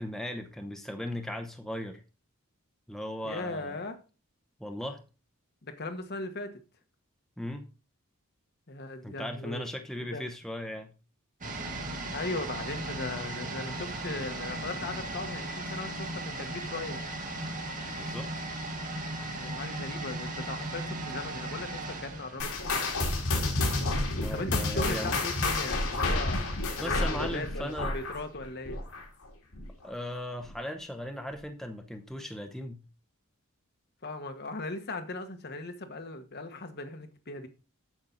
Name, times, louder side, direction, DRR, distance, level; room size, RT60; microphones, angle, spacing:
voice 1, 0.0-2.0 2.9-3.8 4.6-5.0 7.4-7.7 9.0-10.9 17.9-18.3 23.2-23.3 24.2-25.1 26.8-28.0 29.8-32.8, left 1 dB, ahead, 0.8 m, -37 dB
voice 2, 3.2-4.0 5.6-6.6 8.7-9.6 10.0-10.2 12.1-17.0 19.4-22.8 24.3-26.4 26.8-28.8 34.0-37.5, left 2 dB, 50° left, 1.4 m, -38 dB
sound 1, 11.4-23.1 23.4-23.5, right 2 dB, 40° right, 2.1 m, -37 dB
sound 2, 22.4-29.3 29.5-29.8 30.4-30.5 31.3-31.4, left 2 dB, 70° left, 2.7 m, -30 dB
8.8 x 7.2 x 4.0 m
head